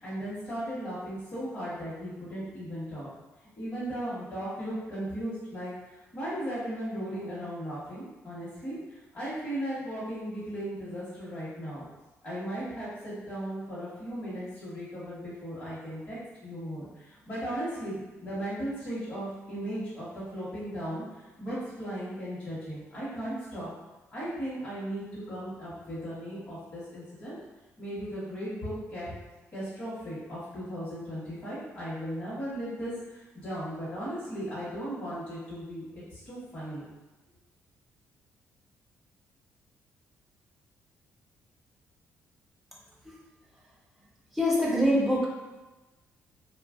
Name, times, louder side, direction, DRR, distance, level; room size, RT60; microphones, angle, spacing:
voice 1, 0.0-3.1 3.6-11.8 12.2-23.7 24.1-27.4 27.8-29.1 29.5-36.8, equal, 30° left, -13 dB, 1.2 m, -36 dB
voice 2, 44.3-45.3, equal, ahead, -5 dB, 0.6 m, -24 dB
3.0 x 2.4 x 2.4 m, 1.1 s
cardioid pair, 130°, 5 cm